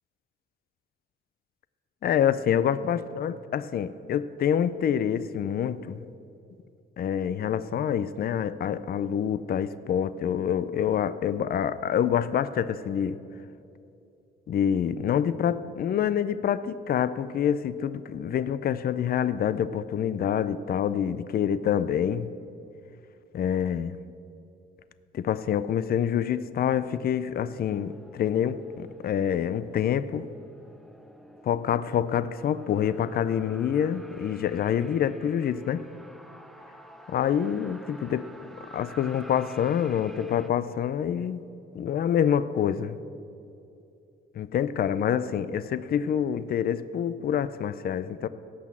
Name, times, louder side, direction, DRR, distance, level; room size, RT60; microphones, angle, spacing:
voice 1, 2.0-6.0 7.0-13.2 14.5-22.3 23.3-23.9 25.1-30.3 31.4-35.9 37.1-38.3 38.7-41.5 41.7-43.0 44.4-48.3, left 9 dB, 50° left, 15 dB, 0.4 m, -26 dB
sound 1, 27.7-40.5, right 1 dB, ahead, 0.6 m, -50 dB
17.0 x 6.1 x 7.4 m, 2.7 s
wide cardioid pair, 155°, 20 cm